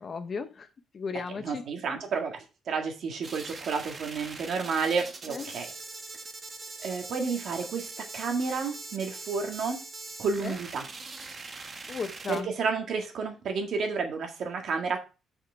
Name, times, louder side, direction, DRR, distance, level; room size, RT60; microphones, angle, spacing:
voice 1, 0.0-0.7 0.9-1.6 5.3-5.5 10.4-10.6 11.9-12.5, left 5 dB, 30° left, 10 dB, 0.7 m, -35 dB
voice 2, 1.1-5.7 6.8-9.8 10.2-10.9 12.3-15.0, right 5 dB, 50° right, 4 dB, 1.8 m, -31 dB
sound 1, 3.2-12.4, right 3 dB, 25° right, 0.9 m, -42 dB
6.5 x 6.3 x 4.5 m, 0.31 s
cardioid pair, 180°, 0 cm